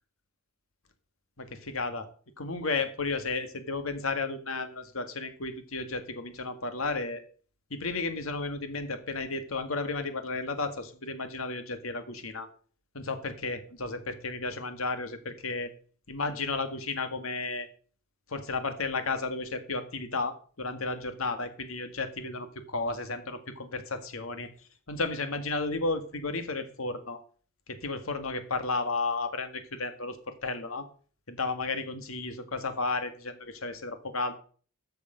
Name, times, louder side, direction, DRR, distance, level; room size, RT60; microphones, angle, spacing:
voice 1, 1.4-2.1 2.4-7.2 7.7-12.5 12.9-15.7 16.1-17.7 18.3-24.5 24.9-27.2 27.7-30.9 31.3-34.4, left 3 dB, 80° left, 9 dB, 1.7 m, -33 dB
13.5 x 6.8 x 5.1 m, 0.42 s
head